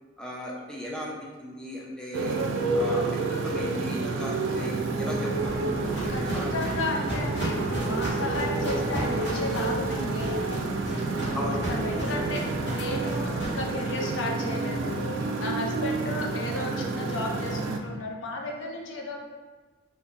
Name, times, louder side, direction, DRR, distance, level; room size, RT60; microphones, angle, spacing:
voice 1, 0.2-1.1 1.4-2.4 2.7-5.9 6.2-6.5 11.3-11.7, equal, 5° left, -4 dB, 0.4 m, -36 dB
Motorcycle, 2.1-17.8, right 3 dB, 90° right, 0.3 m, -29 dB
Walk footsteps, 5.0-13.5, equal, 60° left, 1.4 m, -35 dB
voice 2, 6.1-10.6 11.7-12.4 12.7-15.0 15.4-19.2, left 2 dB, 85° left, 0 dB, 0.5 m, -34 dB
2.5 x 2.4 x 3.7 m, 1.3 s
head